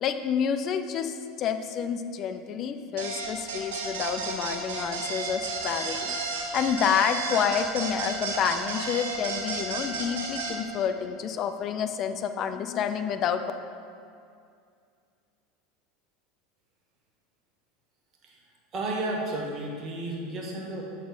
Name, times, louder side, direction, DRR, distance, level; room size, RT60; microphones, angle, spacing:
voice 1, 0.0-13.4, left 7 dB, 45° left, 9 dB, 0.5 m, -29 dB
sound 1, 3.0-10.5, right 3 dB, 75° right, 1.6 m, -32 dB
voice 2, 18.7-20.8, right 2 dB, 40° right, -1 dB, 1.7 m, -32 dB
7.6 x 4.1 x 5.6 m, 2.3 s
hypercardioid pair, 90°, 0 cm